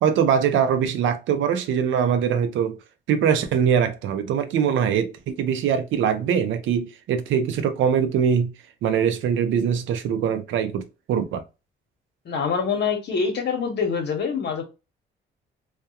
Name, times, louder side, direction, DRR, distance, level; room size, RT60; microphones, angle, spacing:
voice 1, 0.0-2.8 3.1-8.5 8.8-11.4, right 8 dB, 75° right, 0.5 m, -22 dB
voice 2, 12.2-14.6, left 5 dB, 60° left, 1.0 m, -25 dB
2.3 x 2.2 x 2.7 m
cardioid pair, 90°, 20 cm